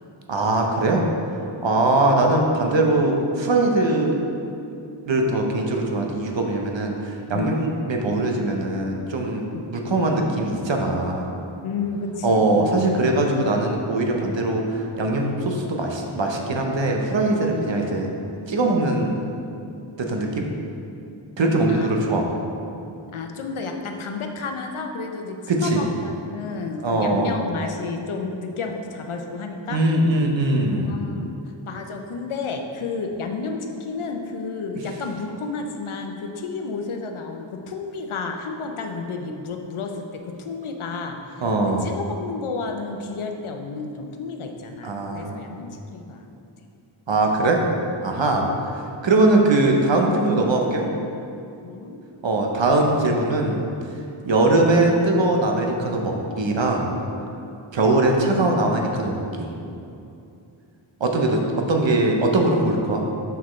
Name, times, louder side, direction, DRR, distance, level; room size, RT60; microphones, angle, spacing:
voice 1, 0.3-1.1 1.6-4.2 5.0-11.3 12.2-18.1 18.5-19.2 20.0-20.5 21.4-22.2 25.5-25.9 26.8-27.4 29.7-30.9 41.4-41.9 44.8-45.4 47.1-47.6 48.0-50.8 52.2-53.6 54.2-56.9 57.7-59.5 61.0-63.0, right 2 dB, 65° right, 1 dB, 0.9 m, -21 dB
voice 2, 11.6-13.1 17.5-17.8 21.7-22.5 23.1-29.8 30.9-41.4 41.8-46.4 48.3-48.7 51.6-52.0, left 4 dB, 85° left, 4 dB, 0.7 m, -31 dB
6.9 x 6.1 x 3.2 m, 2.7 s
wide cardioid pair, 75°, 48 cm